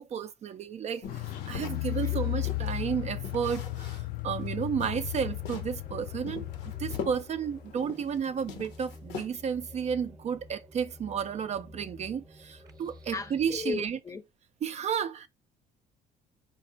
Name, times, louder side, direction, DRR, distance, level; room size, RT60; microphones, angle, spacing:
voice 1, 0.0-6.5 6.8-14.0 14.6-15.3, right 7 dB, 40° right, 0.4 m, -32 dB
sound 1, 1.0-2.8 3.2-4.2 4.5-4.6 4.8-5.8 6.3-8.2 8.4-9.6, left 5 dB, 80° left, 0.9 m, -42 dB
Car, 1.1-7.3 7.5-7.6, left 17 dB, 60° left, 0.4 m, -35 dB
sound 2, 5.0-13.7, left 1 dB, 20° right, 0.8 m, -51 dB
voice 2, 13.1-14.2, left 5 dB, 20° left, 0.6 m, -36 dB
5.2 x 2.0 x 3.9 m
cardioid pair, 110°, 17 cm